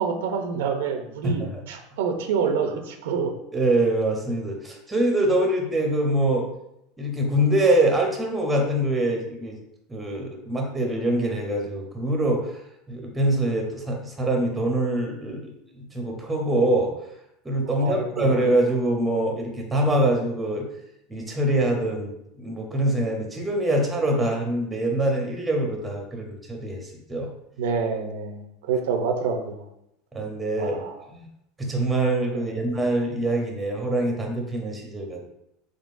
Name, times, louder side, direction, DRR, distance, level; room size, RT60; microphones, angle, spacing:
voice 1, 0.0-3.3 17.8-18.3 27.6-29.6 30.6-30.9 32.3-32.4, right 5 dB, 85° right, 5 dB, 0.5 m, -27 dB
voice 2, 1.2-1.7 3.5-6.5 7.0-9.6 9.9-12.6 12.9-16.9 17.4-20.7 21.1-27.3 30.1-30.8 31.1-31.2 31.6-35.3, right 1 dB, 10° right, 1 dB, 0.7 m, -24 dB
3.9 x 3.7 x 2.5 m, 0.81 s
supercardioid pair, 150°, 0 cm